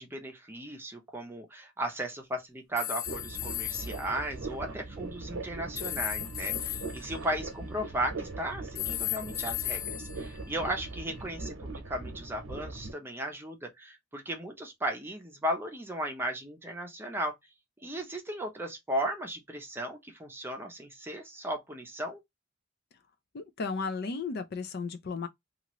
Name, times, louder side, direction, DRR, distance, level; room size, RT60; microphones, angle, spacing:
voice 1, 0.0-17.4 17.8-22.2, right 1 dB, 10° right, 0.7 m, -36 dB
sound 1, 2.8-4.1 5.8-8.2 8.7-11.1, left 14 dB, 85° left, 0.7 m, -36 dB
sound 2, 3.1-12.9, right 2 dB, 85° right, 0.8 m, -40 dB
voice 2, 23.3-25.3, left 4 dB, 50° left, 0.4 m, -34 dB
2.8 x 2.5 x 3.0 m
head